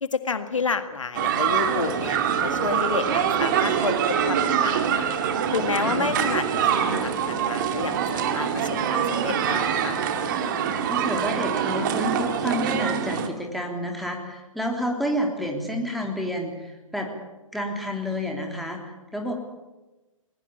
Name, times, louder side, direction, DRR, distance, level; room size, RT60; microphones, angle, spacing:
voice 1, 0.0-5.1 5.5-10.0, left 4 dB, 65° left, 9 dB, 1.8 m, -30 dB
sound 1, 1.1-13.3, right 8 dB, 35° right, 2.3 m, -24 dB
voice 2, 5.8-6.2 10.8-17.1 17.5-19.3, equal, ahead, 1 dB, 3.3 m, -30 dB
21.0 x 20.0 x 8.6 m, 1.1 s
figure-of-eight pair, 125°, 17 cm